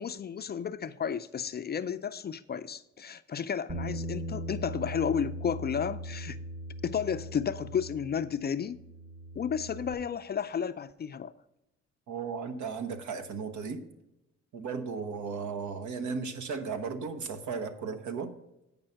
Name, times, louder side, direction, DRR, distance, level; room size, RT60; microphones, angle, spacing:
voice 1, 0.0-6.4 6.8-8.8 9.4-11.3, left 7 dB, 35° left, 0.4 m, -32 dB
Bass guitar, 3.7-9.9, equal, 30° right, 1.2 m, -39 dB
voice 2, 12.1-13.8 14.5-18.3, right 5 dB, 70° right, 1.1 m, -35 dB
8.9 x 5.4 x 5.6 m
cardioid pair, 90°, 30 cm